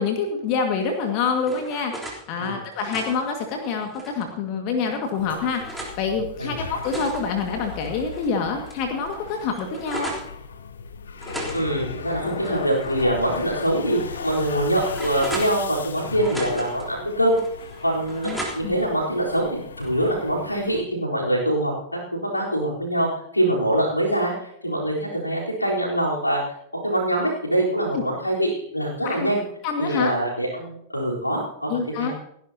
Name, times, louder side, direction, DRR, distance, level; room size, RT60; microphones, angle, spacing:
voice 1, 0.0-10.1 18.3-18.4 18.6-18.8 27.9-28.0 29.0-29.3 29.6-30.1 31.7-32.1, left 5 dB, 45° left, 4 dB, 2.0 m, -26 dB
sound 1, 0.9-2.2 2.6-4.3 4.9-6.0 6.6-8.3 8.7-8.8 9.1-10.3 11.2-13.0 13.4-13.5 14.1-15.9 16.2-16.9 17.4-18.9, right 1 dB, ahead, 3.5 m, -37 dB
sound 2, 5.2-20.8, left 5 dB, 70° left, 1.0 m, -37 dB
voice 2, 11.5-17.4 17.8-23.1 23.3-26.4 26.8-29.4 29.8-31.7 32.0-32.1, right 1 dB, 85° left, -3 dB, 4.0 m, -24 dB
29.5 x 11.0 x 2.9 m, 0.74 s
figure-of-eight pair, 90°, 0 cm